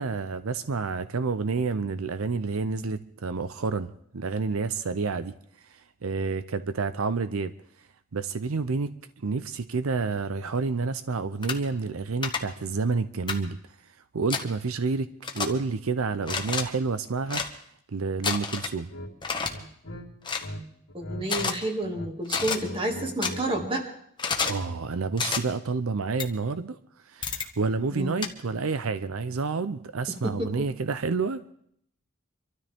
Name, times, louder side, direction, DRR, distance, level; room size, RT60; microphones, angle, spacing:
voice 1, 0.0-5.3 5.7-7.5 8.1-8.9 9.2-13.6 14.1-15.1 15.3-17.4 17.9-18.9 24.4-26.8 27.1-31.5, right 4 dB, 85° right, 12 dB, 0.6 m, -29 dB
sound 1, 11.4-11.6 12.2-12.4 13.3-13.4 14.3-14.4 15.2-15.5 16.2-16.6 17.3-17.5 18.2-18.7 19.2-19.5 20.2-20.5 21.3-21.5 22.3-22.6 23.2-23.3 24.2-24.6 25.2-25.4 26.2-26.3 27.2-27.5 28.2-28.3, left 5 dB, 20° left, 1.2 m, -29 dB
sound 2, 18.9-19.1 19.5-20.6 20.9-21.5 21.8-23.7, equal, 90° left, 2.4 m, -40 dB
voice 2, 20.9-23.9 27.9-28.2 30.2-30.7, right 1 dB, 25° right, 2 dB, 2.1 m, -30 dB
25.5 x 13.0 x 3.6 m, 0.68 s
head